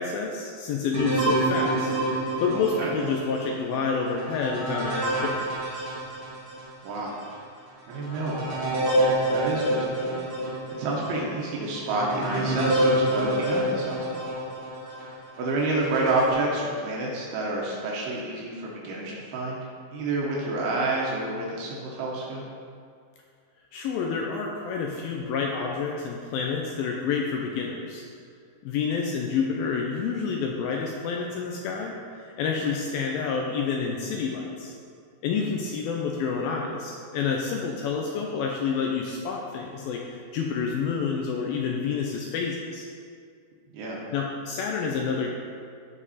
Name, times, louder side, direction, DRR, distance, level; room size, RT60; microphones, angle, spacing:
voice 1, 0.0-1.9 2.4-5.5 23.7-28.0 28.6-34.8 35.2-42.9 44.1-45.3, left 5 dB, 80° left, 0 dB, 2.3 m, -29 dB
sound 1, 0.9-6.7 7.2-7.3 7.9-15.1 15.7-16.3, right 1 dB, 40° right, 1.5 m, -28 dB
voice 2, 2.5-2.9 6.8-7.2 7.9-8.7 9.3-10.1 10.4-14.2 14.9-19.6 19.9-22.5 35.4-35.5 43.7-44.0, right 2 dB, 90° right, -3 dB, 3.2 m, -29 dB
12.0 x 5.3 x 4.2 m, 2.2 s
omnidirectional pair, 4.5 m